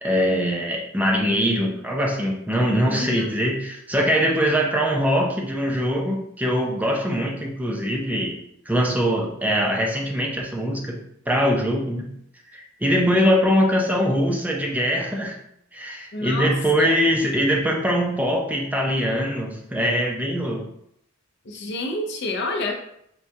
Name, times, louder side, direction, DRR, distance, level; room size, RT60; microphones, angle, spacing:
voice 1, 0.0-8.4 8.7-10.9 11.3-12.1 12.5-15.3 15.7-20.6, equal, 10° right, -1 dB, 0.5 m, -22 dB
voice 2, 2.9-3.3 16.1-16.9 21.5-22.7, left 2 dB, 60° left, 3 dB, 0.5 m, -28 dB
4.4 x 2.3 x 2.7 m, 0.74 s
head